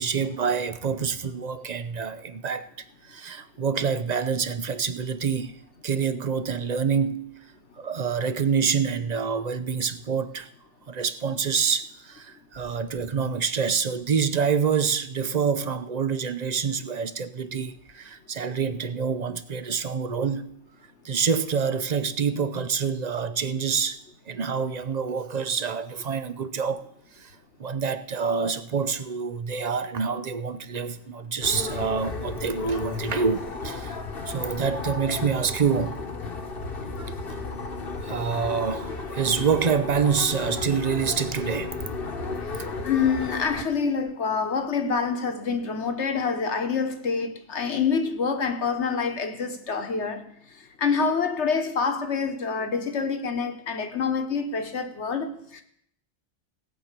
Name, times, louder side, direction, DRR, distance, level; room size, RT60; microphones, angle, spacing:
voice 1, 0.0-2.7 3.1-5.6 5.8-7.4 7.8-10.5 10.9-20.6 21.0-24.0 24.3-26.8 27.2-27.3 27.6-36.0 37.3-37.4 38.0-41.7, right 6 dB, 40° right, 0.7 m, -27 dB
sound 1, 31.4-43.6, left 3 dB, 50° left, 1.3 m, -33 dB
voice 2, 42.8-50.3 50.8-55.6, left 5 dB, 70° left, 1.5 m, -26 dB
17.5 x 5.9 x 8.2 m
omnidirectional pair, 1.3 m